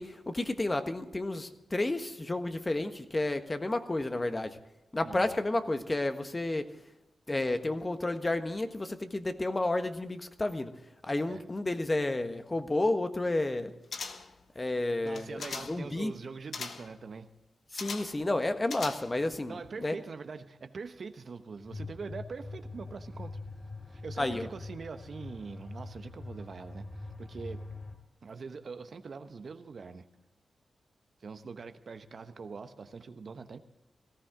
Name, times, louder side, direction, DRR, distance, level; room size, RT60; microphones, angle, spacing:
voice 1, 0.0-4.6 4.9-6.7 7.3-10.7 11.0-13.7 14.5-16.1 17.7-20.0 24.2-24.5, left 2 dB, 30° left, 1.5 m, -31 dB
voice 2, 5.0-5.4 11.3-11.4 15.0-17.3 19.5-23.3 23.9-27.6 28.2-30.1 31.2-33.6, right 5 dB, 65° right, 1.0 m, -43 dB
sound 1, 13.9-14.4 15.1-15.9 16.5-16.9 17.8-18.2 18.6-19.3 19.6-19.7, left 5 dB, 75° left, 1.3 m, -40 dB
sound 2, 21.6-27.9, left 2 dB, 50° left, 2.7 m, -43 dB
18.0 x 14.5 x 3.8 m
cardioid pair, 50°, 0 cm